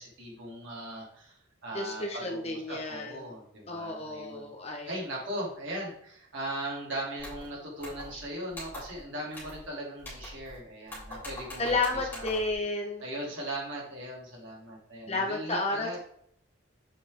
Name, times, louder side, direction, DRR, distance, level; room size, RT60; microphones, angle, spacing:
voice 1, 0.0-4.5 4.9-12.5 13.0-16.0, right 1 dB, 70° right, -4 dB, 3.0 m, -39 dB
voice 2, 1.7-3.3 3.7-4.9 8.1-8.2 11.6-13.0 15.1-16.0, left 3 dB, 30° left, 1 dB, 1.0 m, -32 dB
sound 1, 7.2-7.5 7.8-8.2 8.5-9.0 9.3-9.7 10.0-10.6 10.9-12.5, left 1 dB, 10° left, 2.9 m, -43 dB
7.4 x 4.8 x 3.7 m, 0.68 s
head